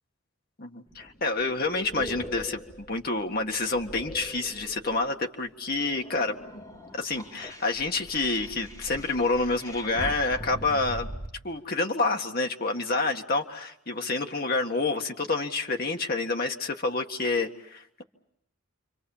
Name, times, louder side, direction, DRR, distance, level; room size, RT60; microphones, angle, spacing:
voice 1, 0.6-6.6 6.9-11.1 11.4-18.0, left 3 dB, 45° left, 3 dB, 1.8 m, -28 dB
sound 1, 0.9-5.1 5.6-11.3, equal, 20° left, 3.9 m, -41 dB
28.5 x 25.0 x 7.3 m, 0.75 s
head